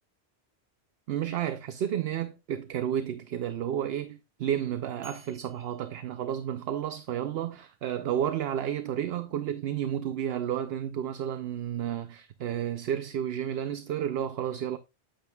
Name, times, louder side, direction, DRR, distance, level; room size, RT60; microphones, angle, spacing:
voice 1, 1.1-14.8, right 10 dB, 65° right, 0.8 m, -31 dB
sound 1, 5.0-7.1, right 1 dB, 40° right, 3.1 m, -57 dB
8.9 x 8.9 x 2.2 m
omnidirectional pair, 1.1 m